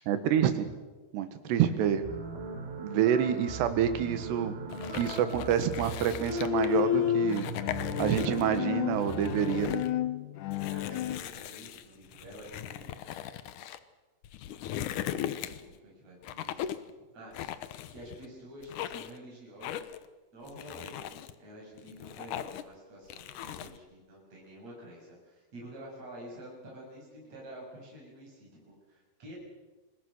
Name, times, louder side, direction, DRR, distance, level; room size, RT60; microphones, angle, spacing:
voice 1, 0.1-0.7 1.1-2.1 2.8-4.5 4.9-7.5 8.0-9.8, right 9 dB, 85° right, 10 dB, 3.7 m, -27 dB
sound 1, 2.0-9.8, right 3 dB, 60° right, 4.8 m, -39 dB
sound 2, 4.7-6.8 7.2-8.6 8.9-9.9 10.5-13.8 14.2-15.8 16.2-16.9 17.3-18.3 18.6-19.2 19.6-20.1 20.5-21.3 21.8-22.7 23.1-23.8, left 11 dB, 70° left, 1.9 m, -39 dB
Bowed string instrument, 6.2-11.2, left 13 dB, 90° left, 1.7 m, -31 dB
voice 2, 10.5-12.9 15.1-17.6 17.9-20.0 20.3-29.4, equal, 40° right, -3 dB, 8.1 m, -49 dB
27.0 x 21.0 x 6.5 m, 1.2 s
omnidirectional pair, 4.7 m